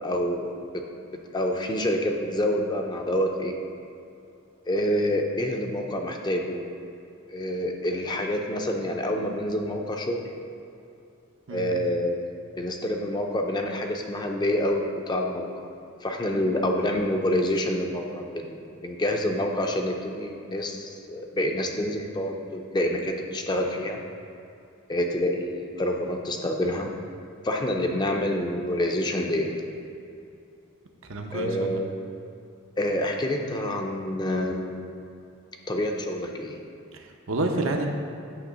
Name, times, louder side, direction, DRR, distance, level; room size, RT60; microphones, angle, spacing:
voice 1, 0.0-0.5 1.3-3.6 4.7-6.8 7.3-10.2 11.5-12.2 12.6-15.7 16.0-24.0 24.9-26.9 27.4-29.5 31.3-32.0 32.8-34.9 35.7-36.6, left 1 dB, 20° left, 2 dB, 0.5 m, -27 dB
voice 2, 31.1-31.8 36.9-37.9, right 2 dB, 70° right, 3 dB, 0.7 m, -29 dB
8.7 x 2.9 x 6.1 m, 2.6 s
head